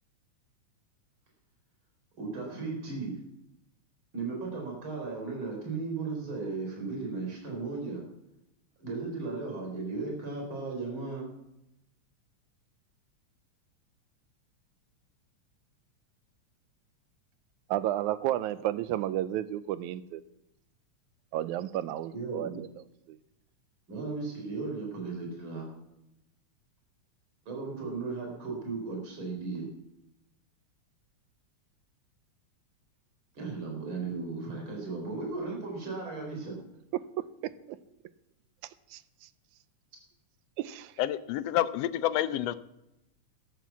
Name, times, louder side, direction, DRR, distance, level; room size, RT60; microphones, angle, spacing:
voice 1, 2.2-3.2 4.1-8.0 8.8-11.3 22.1-22.6 23.9-25.7 27.4-29.7 33.3-36.5, right 4 dB, 40° right, 0 dB, 4.8 m, -36 dB
voice 2, 17.7-20.2 21.3-22.7 23.1-23.2 37.7-37.8 38.9-39.0 40.6-40.9, right 13 dB, 90° right, 15 dB, 2.1 m, -32 dB
voice 3, 41.0-42.6, left 12 dB, 75° left, 14 dB, 1.6 m, -28 dB
12.5 x 9.1 x 7.2 m, 0.87 s
omnidirectional pair, 3.3 m